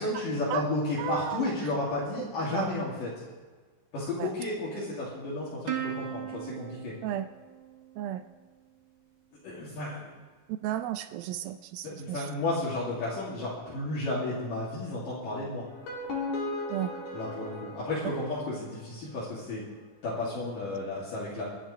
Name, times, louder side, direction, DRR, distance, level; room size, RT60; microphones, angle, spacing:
voice 1, 0.0-3.1 3.9-6.9 9.4-10.0 11.8-15.6 17.1-19.6 20.0-21.4, left 2 dB, 65° left, -8 dB, 4.2 m, -32 dB
voice 2, 1.0-1.5 2.2-2.7 4.2-4.3 7.0-7.3 8.0-8.2 10.6-12.3 16.7-16.9, right 12 dB, 80° right, 10 dB, 2.3 m, -34 dB
Plucked string instrument, 5.7-8.4, right 10 dB, 65° right, 1.1 m, -38 dB
sound 1, 15.6-18.8, left 2 dB, 90° left, 4.6 m, -37 dB
29.0 x 10.0 x 3.3 m, 1.4 s
omnidirectional pair, 4.3 m